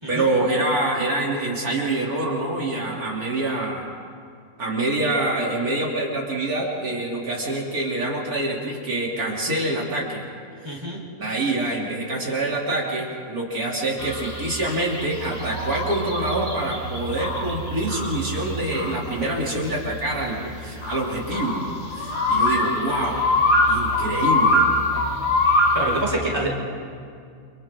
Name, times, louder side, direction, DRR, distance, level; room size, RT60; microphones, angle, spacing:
voice 1, 0.1-3.9 4.6-10.2 10.6-10.8 11.2-21.6 21.9-23.3 23.7-24.6, right 2 dB, 85° right, -3 dB, 3.7 m, -26 dB
voice 2, 10.6-11.0 20.7-20.9 25.4-26.6, right 1 dB, 15° right, -2 dB, 4.2 m, -27 dB
sound 1, 14.0-26.0, left 1 dB, 70° left, 5.0 m, -24 dB
29.5 x 27.0 x 3.8 m, 2.2 s
omnidirectional pair, 1.5 m